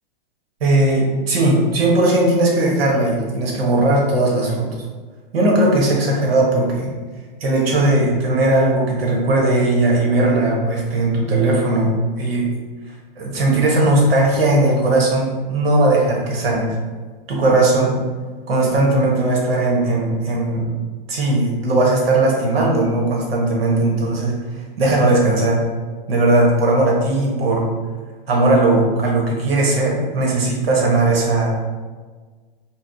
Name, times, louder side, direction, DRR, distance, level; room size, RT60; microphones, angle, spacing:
voice 1, 0.6-4.7 5.3-6.9 7.4-12.5 13.2-16.8 17.3-18.0 18.5-20.7 21.1-25.6 26.1-27.7 28.3-31.5, right 2 dB, 80° right, -2 dB, 1.4 m, -18 dB
4.3 x 2.4 x 3.9 m, 1.4 s
hypercardioid pair, 135°, 29 cm